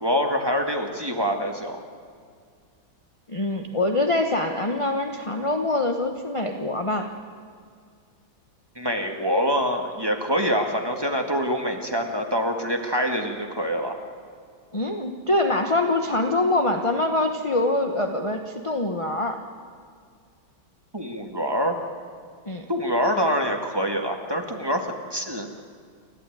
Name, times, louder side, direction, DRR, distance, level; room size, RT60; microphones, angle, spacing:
voice 1, 0.0-1.8 8.8-14.0 20.9-21.8 22.7-25.5, equal, 10° right, 3 dB, 1.8 m, -25 dB
voice 2, 3.3-7.1 14.7-19.4 22.4-22.6, left 2 dB, 20° left, 4 dB, 0.9 m, -24 dB
29.5 x 12.5 x 9.4 m, 2.1 s
omnidirectional pair, 2.2 m